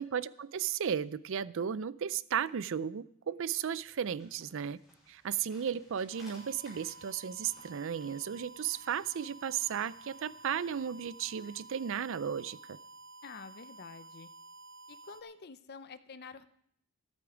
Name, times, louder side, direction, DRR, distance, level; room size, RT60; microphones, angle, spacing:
voice 1, 0.0-4.8 5.1-12.8, right 8 dB, 60° right, 0.4 m, -35 dB
sound 1, 3.4-11.7, left 1 dB, ahead, 6.8 m, -62 dB
sound 2, 6.1-15.2, right 2 dB, 40° right, 1.1 m, -52 dB
voice 2, 13.2-14.3 14.9-16.5, left 5 dB, 50° left, 0.6 m, -48 dB
13.5 x 12.0 x 5.0 m
head